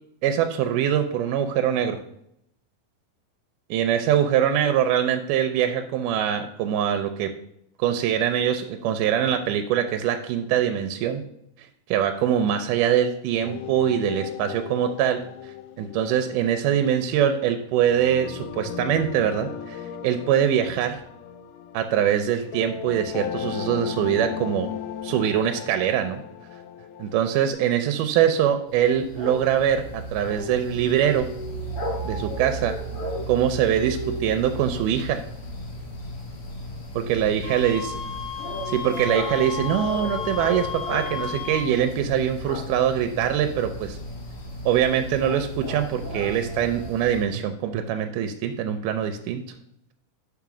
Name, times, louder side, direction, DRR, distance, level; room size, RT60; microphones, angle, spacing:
voice 1, 0.2-2.0 3.7-7.3 7.8-11.2 11.9-21.0 21.7-24.7 25.0-26.2 27.0-31.3 32.0-32.8 33.3-35.2 37.0-37.8 38.7-44.0 44.7-49.4, right 9 dB, 85° right, 7 dB, 2.1 m, -23 dB
sound 1, 13.4-27.5, left 9 dB, 85° left, 2.1 m, -36 dB
sound 2, 28.7-47.2, equal, 50° left, 2.0 m, -34 dB
Wind instrument woodwind instrument, 37.4-41.7, left 7 dB, 65° left, 1.6 m, -34 dB
5.3 x 4.7 x 6.0 m, 0.75 s
omnidirectional pair, 3.7 m